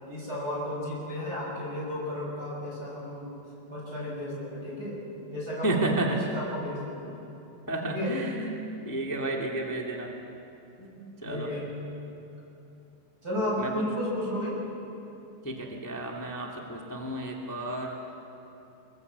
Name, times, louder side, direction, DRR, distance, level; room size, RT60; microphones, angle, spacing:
voice 1, 0.0-3.3 3.7-5.0 5.3-7.1 7.8-8.1 11.2-11.6 13.2-14.6, left 1 dB, 20° right, -4 dB, 6.7 m, -33 dB
voice 2, 5.6-6.2 7.7-10.1 10.8-11.5 13.6-13.8 15.4-18.0, right 2 dB, 10° left, 0 dB, 1.2 m, -32 dB
26.0 x 20.5 x 8.3 m, 2.9 s
omnidirectional pair, 4.5 m